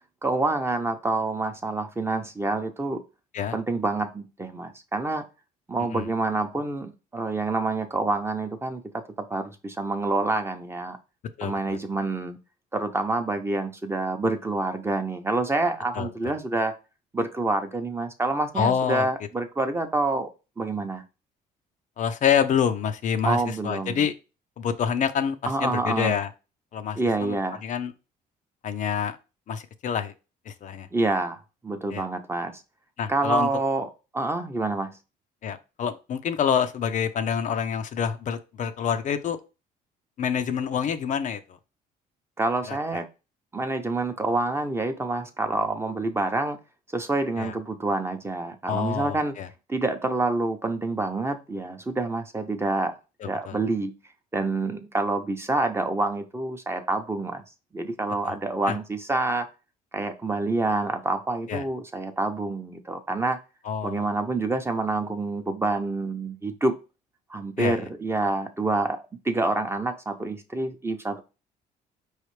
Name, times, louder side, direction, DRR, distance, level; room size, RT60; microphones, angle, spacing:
voice 1, 0.2-3.0 3.5-5.2 5.7-9.0 9.3-11.0 11.4-12.4 12.7-16.7 17.1-20.3 20.6-21.0 23.2-24.0 25.5-26.2 27.0-27.6 30.9-32.5 33.1-34.9 42.4-43.1 43.5-46.6 46.9-49.3 49.7-52.9 53.2-53.9 54.3-57.4 57.7-59.5 59.9-63.4 63.8-66.7 67.3-69.0 69.2-71.2, right 2 dB, 15° right, 6 dB, 0.7 m, -27 dB
voice 2, 11.4-11.8 15.9-16.3 18.6-19.1 22.0-24.1 24.6-26.3 26.7-27.4 27.6-27.9 28.6-29.2 29.5-30.1 30.5-30.9 31.9-32.1 33.0-33.5 35.4-39.4 40.2-41.6 42.7-43.0 47.4-47.5 48.7-49.5 53.2-53.6 58.2-58.3 58.7-58.8 61.5-61.6 63.6-64.0 67.6-67.8, left 8 dB, 50° left, 9 dB, 0.5 m, -27 dB
4.8 x 3.2 x 3.1 m, 0.30 s
cardioid pair, 110°, 17 cm